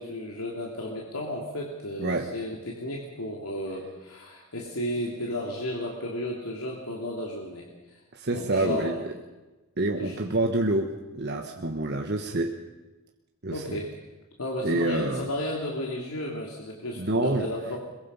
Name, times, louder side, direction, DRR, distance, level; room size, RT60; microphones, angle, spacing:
voice 1, 0.0-8.0 8.3-9.0 10.0-10.2 13.5-13.9 14.4-17.8, left 1 dB, 90° left, -1 dB, 3.0 m, -33 dB
voice 2, 2.0-2.3 8.1-9.1 9.8-12.6 13.4-13.8 14.6-15.3 17.0-17.5, right 2 dB, 50° right, 3 dB, 1.3 m, -27 dB
22.5 x 22.0 x 5.6 m, 1.1 s
head